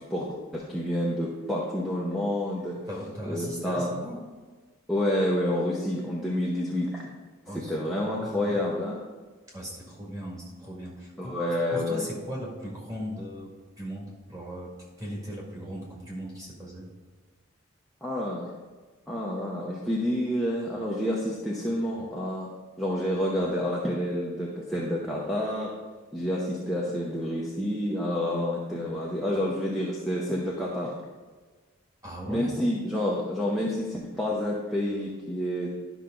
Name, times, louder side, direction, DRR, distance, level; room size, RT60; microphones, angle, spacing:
voice 1, 0.0-2.8 3.3-3.9 4.9-7.0 7.5-9.0 11.2-12.0 18.0-18.5 19.1-22.5 22.8-25.7 26.1-30.9 32.3-35.7, left 1 dB, ahead, -5 dB, 0.8 m, -29 dB
voice 2, 2.9-4.2 7.5-7.7 8.0-8.6 9.5-11.4 11.7-14.7 15.0-16.9 32.0-32.5, equal, 15° right, -3 dB, 2.0 m, -38 dB
11.5 x 5.7 x 3.8 m, 1.4 s
head